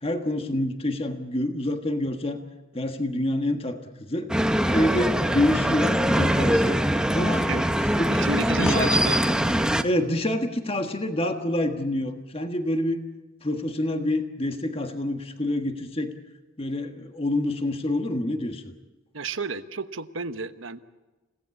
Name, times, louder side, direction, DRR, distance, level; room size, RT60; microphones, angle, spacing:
voice 1, 0.0-2.4 2.7-4.3 4.7-6.8 7.1-7.5 7.9-8.3 8.6-9.0 9.8-13.0 13.4-16.1 16.6-18.7, left 1 dB, 30° left, 6 dB, 1.5 m, -27 dB
sound 1, 4.3-9.8, equal, 5° right, 0.8 m, -23 dB
voice 2, 8.1-9.2 19.1-20.8, right 4 dB, 75° right, 10 dB, 1.1 m, -31 dB
30.0 x 17.5 x 8.4 m, 1.2 s
head